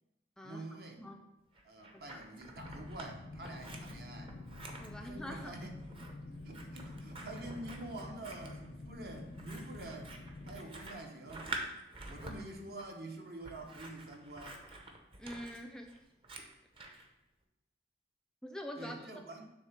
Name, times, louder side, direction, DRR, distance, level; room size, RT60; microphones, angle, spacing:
voice 1, 0.4-1.0 1.6-4.4 5.0-5.8 6.4-10.1 10.5-11.5 12.0-14.7 18.8-19.5, right 2 dB, 60° right, 2 dB, 1.0 m, -47 dB
voice 2, 1.0-1.3 1.9-2.2 4.8-5.5 15.2-15.9 18.4-19.1, equal, 5° left, 2 dB, 0.4 m, -45 dB
Scissors, 1.5-3.1 3.4-17.1, right 2 dB, 30° right, 0.8 m, -48 dB
sound 1, 2.6-10.6, left 2 dB, 50° left, 0.6 m, -48 dB
7.2 x 3.3 x 5.8 m, 0.94 s
head